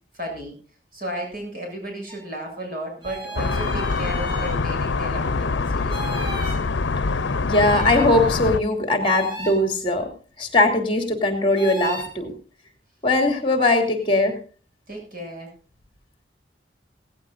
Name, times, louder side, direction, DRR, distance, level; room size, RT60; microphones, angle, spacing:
voice 1, 0.1-0.6 0.9-6.5 14.9-15.5, right 1 dB, 50° right, 2 dB, 7.6 m, -34 dB
sound 1, 2.1-2.2 3.0-4.6 5.9-6.6 7.5-8.1 9.0-9.6 11.5-12.1, right 2 dB, 25° right, 5.0 m, -35 dB
sound 2, 3.4-8.6, left 4 dB, 90° left, 0.6 m, -24 dB
voice 2, 7.4-10.1 10.4-12.3 13.0-14.4, left 2 dB, 30° left, 5 dB, 2.8 m, -20 dB
17.5 x 16.5 x 2.6 m, 0.38 s
head